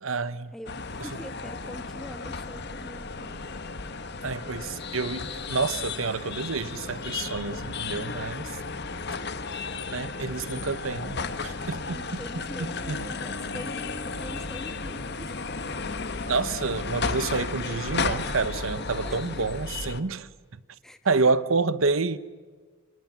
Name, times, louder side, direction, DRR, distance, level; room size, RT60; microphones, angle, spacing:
voice 1, 0.0-0.5 4.2-8.6 9.9-12.2 12.6-13.0 16.3-20.6 21.0-22.2, right 4 dB, 80° right, 1.0 m, -28 dB
voice 2, 0.5-3.4 11.9-15.5 19.0-19.4 20.8-21.2, equal, ahead, 1.4 m, -44 dB
sound 1, 0.7-20.0, left 4 dB, 55° left, 1.5 m, -34 dB
30.0 x 26.0 x 7.5 m
head